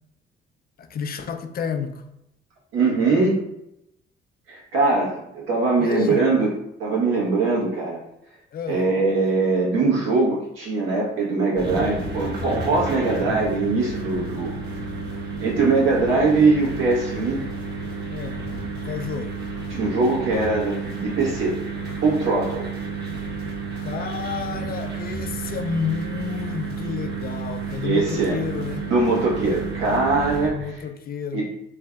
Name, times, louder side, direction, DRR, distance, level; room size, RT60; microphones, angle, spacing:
voice 1, 0.8-2.1 5.8-6.2 8.5-8.8 18.1-18.4 18.8-19.4 23.8-28.9 30.5-31.4, left 7 dB, 50° left, 0.4 m, -30 dB
voice 2, 2.7-3.4 4.5-6.5 6.8-8.0 8.7-14.5 15.4-17.4 19.7-21.5 22.0-22.7 27.8-28.4 28.8-30.7 31.3-31.4, right 3 dB, 85° right, 1.5 m, -21 dB
sound 1, 11.6-30.5, right 3 dB, 55° right, 1.4 m, -31 dB
3.2 x 2.5 x 4.4 m
cardioid pair, 90°, 20 cm